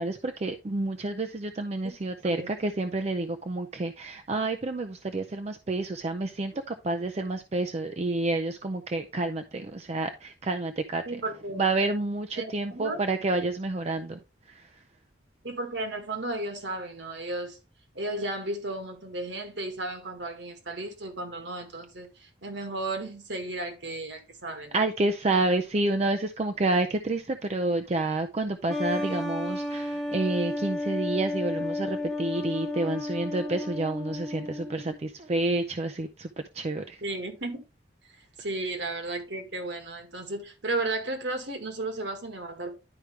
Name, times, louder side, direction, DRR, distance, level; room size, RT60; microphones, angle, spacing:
voice 1, 0.0-11.0 11.5-14.2 14.5-14.7 24.7-36.3 36.5-37.0, right 2 dB, 35° right, 0.4 m, -29 dB
voice 2, 11.1-11.7 12.4-13.0 15.4-17.6 18.0-24.8 37.0-37.6 38.4-42.7, right 2 dB, 65° right, 1.8 m, -34 dB
sound 1, 28.7-35.0, left 1 dB, ahead, 0.8 m, -32 dB
11.0 x 4.8 x 3.2 m
head